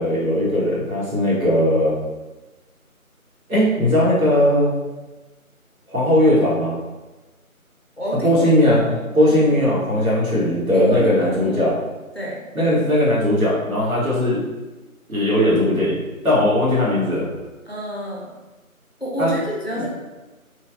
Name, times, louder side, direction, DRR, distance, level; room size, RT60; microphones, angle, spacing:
voice 1, 0.0-1.9 3.5-4.7 5.9-6.8 8.2-11.7 12.5-14.4 15.1-16.0 16.2-17.3 19.2-19.3 19.7-19.8, left 1 dB, 75° right, -6 dB, 1.4 m, -18 dB
voice 2, 8.0-9.0 9.3-9.6 10.7-11.8 12.1-12.4 17.7-18.3 19.0-19.9, equal, 45° left, -4 dB, 0.5 m, -28 dB
3.2 x 2.3 x 2.4 m, 1.1 s
figure-of-eight pair, 175°, 43 cm